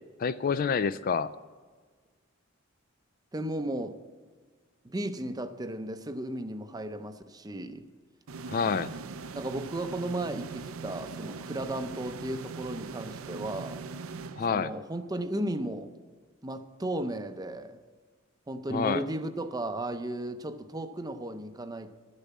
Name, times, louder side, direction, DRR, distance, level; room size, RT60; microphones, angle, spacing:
voice 1, 0.2-1.3 8.5-8.9 14.4-14.7 18.7-19.0, left 6 dB, 45° left, 0.3 m, -27 dB
voice 2, 3.3-4.0 4.8-7.8 9.3-13.8 14.5-15.9 16.4-17.8 18.5-21.9, right 1 dB, 20° right, 0.6 m, -35 dB
sound 1, 8.3-15.0, right 4 dB, 85° right, 0.5 m, -41 dB
12.0 x 6.8 x 8.4 m
head